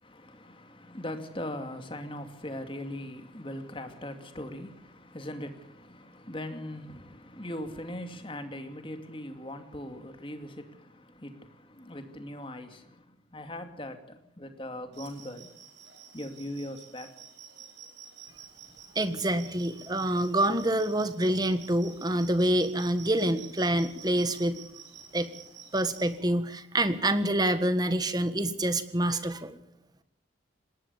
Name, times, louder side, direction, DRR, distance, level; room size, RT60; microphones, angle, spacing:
voice 1, 0.0-15.5 16.1-17.1, left 1 dB, 25° left, 2.4 m, -40 dB
sound 1, 14.9-26.2, right 7 dB, 65° right, 5.3 m, -50 dB
voice 2, 18.9-24.6 25.1-25.3 25.7-29.5, right 1 dB, 20° right, 1.5 m, -27 dB
20.0 x 18.5 x 7.1 m
head